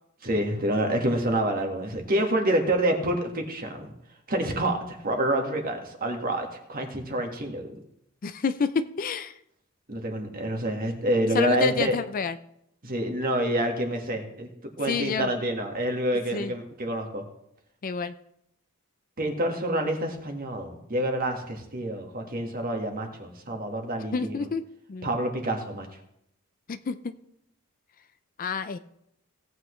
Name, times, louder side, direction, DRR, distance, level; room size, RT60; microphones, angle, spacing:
voice 1, 0.2-3.9 4.3-7.8 9.9-11.9 12.8-14.5 14.8-17.2 19.2-24.4 25.0-25.9, right 1 dB, 40° right, 3 dB, 1.7 m, -27 dB
voice 2, 8.2-9.3 11.3-12.4 14.9-15.3 16.3-16.5 17.8-18.1 24.1-24.6 24.9-25.1 26.7-27.1 28.4-28.8, left 5 dB, 40° left, 12 dB, 0.4 m, -28 dB
17.5 x 8.2 x 3.2 m, 0.76 s
head